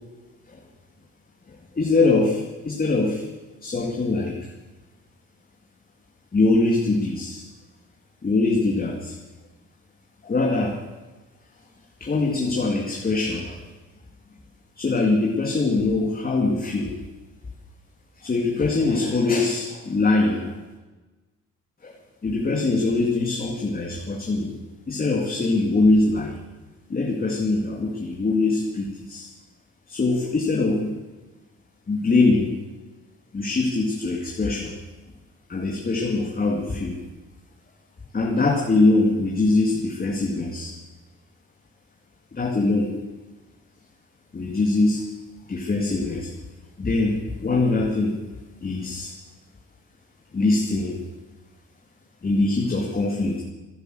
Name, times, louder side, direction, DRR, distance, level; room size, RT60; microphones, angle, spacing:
voice 1, 1.5-3.2 3.6-4.5 6.3-7.4 8.2-9.2 10.2-10.8 12.0-13.6 14.8-16.9 18.2-20.6 21.8-22.0 22.2-24.6 24.9-26.4 26.9-29.3 29.9-30.9 31.9-32.5 33.3-34.7 35.5-37.0 38.1-40.7 42.3-43.0 44.3-45.0 45.5-46.3 46.8-48.2 48.6-49.1 50.3-51.0 52.2-53.4, left 3 dB, 30° left, -1 dB, 2.4 m, -23 dB
16.0 x 10.5 x 7.8 m, 1.2 s
cardioid pair, 90°, 30 cm